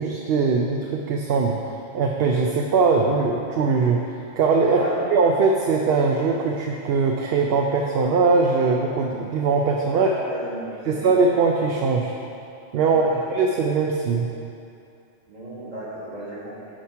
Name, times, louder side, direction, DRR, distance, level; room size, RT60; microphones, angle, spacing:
voice 1, 0.0-1.6 1.9-4.0 4.4-4.8 5.1-10.1 10.9-12.1 12.7-13.0 13.3-14.3, right 4 dB, 65° right, 1 dB, 0.7 m, -21 dB
voice 2, 9.9-11.1 12.8-13.3 15.3-16.6, right 1 dB, 35° right, -6 dB, 1.6 m, -33 dB
9.2 x 4.4 x 4.6 m, 2.6 s
omnidirectional pair, 1.3 m